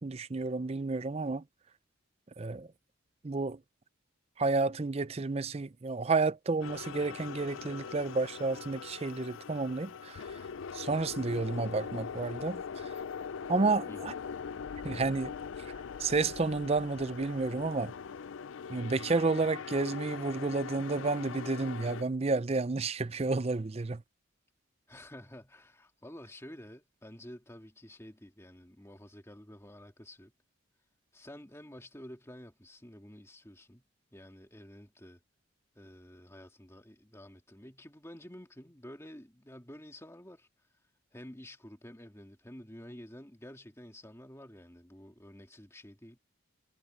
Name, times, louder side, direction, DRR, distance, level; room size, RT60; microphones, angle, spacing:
voice 1, 0.0-1.4 2.4-2.7 3.2-3.6 4.4-10.4 10.7-12.9 13.5-14.1 14.8-15.7 16.0-17.9 18.7-24.0, right 3 dB, 30° right, 0.5 m, -31 dB
sound 1, 6.6-22.0, left 6 dB, 70° left, 0.4 m, -42 dB
voice 2, 24.9-30.3 31.1-33.8 34.1-35.2 35.8-40.5 41.1-46.2, left 1 dB, 15° left, 2.2 m, -50 dB
head